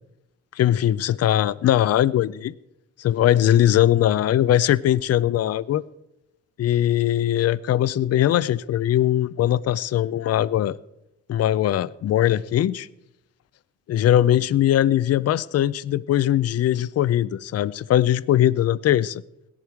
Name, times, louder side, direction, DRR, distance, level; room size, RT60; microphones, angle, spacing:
voice 1, 0.6-2.5 3.0-5.8 6.6-10.8 11.3-12.9 13.9-19.2, left 12 dB, 55° left, 18 dB, 0.5 m, -20 dB
17.0 x 11.0 x 4.6 m, 0.87 s
cardioid pair, 90°, 30 cm